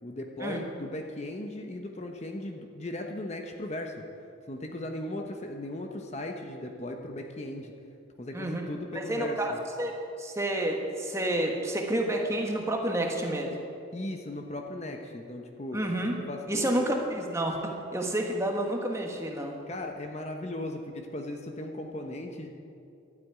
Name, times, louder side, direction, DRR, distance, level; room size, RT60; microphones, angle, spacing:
voice 1, 0.0-4.0 4.5-7.7 8.2-9.6 13.9-15.8 16.3-17.0 19.7-22.5, left 1 dB, 35° left, 3 dB, 0.9 m, -37 dB
voice 2, 8.3-8.7 8.9-9.9 10.2-13.5 15.7-16.2 16.5-19.6, right 1 dB, 15° right, 1 dB, 1.4 m, -29 dB
12.0 x 8.5 x 9.4 m, 2.6 s
head